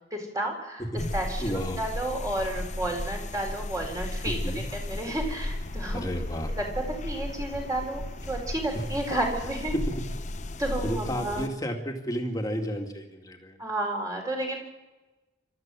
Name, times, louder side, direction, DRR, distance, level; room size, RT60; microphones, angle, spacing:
voice 1, 0.1-0.8 1.1-4.4 4.7-6.0 6.5-6.6 7.0-9.8 10.6-11.5 13.6-14.6, right 1 dB, 20° right, 1 dB, 4.3 m, -31 dB
sound 1, 1.0-11.5, left 1 dB, 40° left, 0.8 m, -35 dB
voice 2, 1.4-1.8 4.2-4.6 5.9-6.5 8.7-8.8 9.7-9.9 10.8-13.6, equal, 20° left, 3 dB, 2.4 m, -32 dB
27.0 x 13.5 x 7.6 m, 1.1 s
head